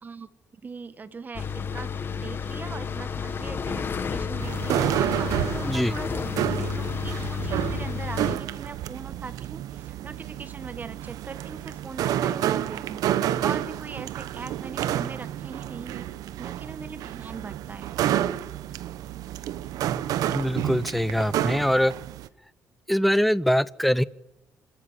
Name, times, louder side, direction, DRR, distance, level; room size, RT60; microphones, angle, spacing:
voice 1, 0.0-13.0 13.4-16.1 16.4-17.9, right 4 dB, 30° right, 12 dB, 1.7 m, -40 dB
sound 1, 1.3-8.4, left 6 dB, 35° left, 1.8 m, -31 dB
sound 2, 4.4-22.3, right 11 dB, 80° right, 1.1 m, -30 dB
voice 2, 20.3-21.9 22.9-24.0, equal, ahead, 17 dB, 0.8 m, -23 dB
26.0 x 13.5 x 9.9 m, 0.91 s
cardioid pair, 110°, 6 cm